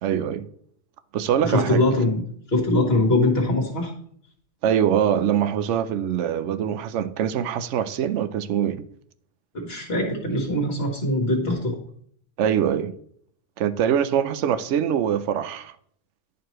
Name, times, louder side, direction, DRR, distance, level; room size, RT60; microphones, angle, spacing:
voice 1, 0.0-0.5 1.1-1.8 4.6-8.9 12.4-12.9 13.6-15.7, right 9 dB, 75° right, 0.9 m, -23 dB
voice 2, 1.4-2.2 2.5-3.9 9.5-11.7, left 2 dB, 55° left, 1.5 m, -22 dB
10.5 x 4.6 x 3.0 m
omnidirectional pair, 1.3 m